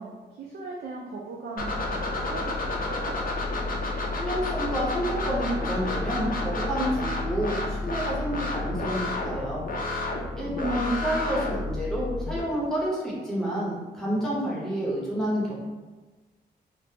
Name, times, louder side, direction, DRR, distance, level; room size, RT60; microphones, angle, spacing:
voice 1, 0.0-3.2 10.4-10.9, right 3 dB, 70° right, -2 dB, 0.4 m, -39 dB
sound 1, 1.6-12.4, left 2 dB, 55° left, 0.5 m, -30 dB
voice 2, 4.2-9.6 10.4-15.5, equal, 5° left, -6 dB, 0.8 m, -29 dB
3.3 x 2.0 x 2.8 m, 1.3 s
wide cardioid pair, 135°, 18 cm